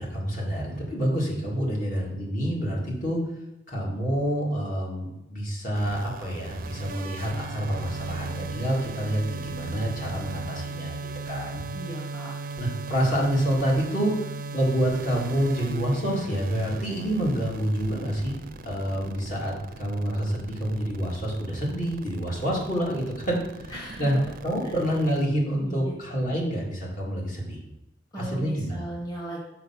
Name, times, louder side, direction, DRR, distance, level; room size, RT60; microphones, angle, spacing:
voice 1, 0.0-3.2 3.7-11.0 11.2-11.6 12.6-14.1 14.5-18.3 18.6-23.7 24.0-27.6 28.2-28.8, equal, 50° left, -3 dB, 2.0 m, -27 dB
sound 1, 5.8-25.2, right 3 dB, 50° right, 0.5 m, -37 dB
voice 2, 11.7-12.3 23.7-24.1 24.6-24.8 25.6-25.9 28.1-29.4, right 1 dB, 20° left, -3 dB, 1.5 m, -36 dB
6.8 x 4.7 x 5.6 m, 0.95 s
head